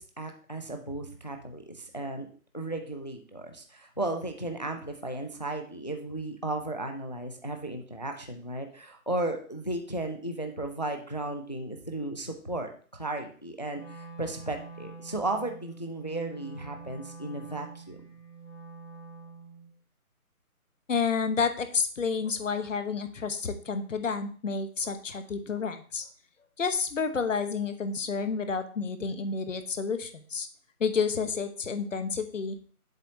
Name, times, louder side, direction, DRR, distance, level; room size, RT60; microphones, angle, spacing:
voice 1, 0.0-2.3 2.5-18.0, right 2 dB, 30° left, 5 dB, 0.5 m, -35 dB
Wind instrument woodwind instrument, 13.7-19.7, right 4 dB, 5° left, 1.4 m, -46 dB
voice 2, 20.9-26.0 26.6-30.5 30.8-32.6, left 5 dB, 55° left, 9 dB, 1.0 m, -30 dB
7.6 x 6.8 x 2.8 m, 0.43 s
figure-of-eight pair, 165°, 44 cm